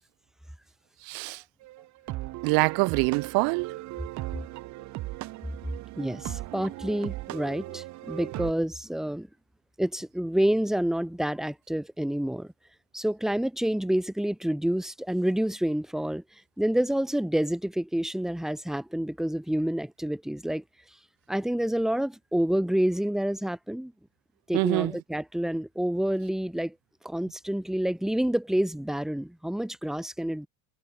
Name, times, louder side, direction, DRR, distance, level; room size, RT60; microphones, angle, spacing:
voice 1, 1.0-1.4 2.4-3.7 24.5-24.9, right 30 dB, 70° right, 2.4 m, -25 dB
sound 1, 1.6-8.5, right 17 dB, 50° right, 1.4 m, -38 dB
voice 2, 6.0-9.3 9.8-12.5 12.9-16.2 16.6-20.6 21.3-23.9 24.5-26.7 27.0-30.5, right 1 dB, ahead, 2.7 m, -28 dB
cardioid pair, 150°, 37 cm